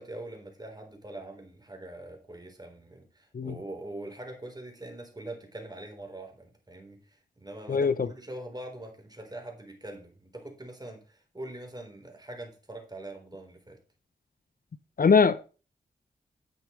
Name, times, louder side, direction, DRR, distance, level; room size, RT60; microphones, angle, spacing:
voice 1, 0.0-13.8, right 1 dB, 20° right, 3.8 m, -43 dB
voice 2, 7.7-8.1 15.0-15.5, left 5 dB, 55° left, 0.7 m, -22 dB
10.5 x 8.2 x 3.1 m
wide cardioid pair, 70°, 18 cm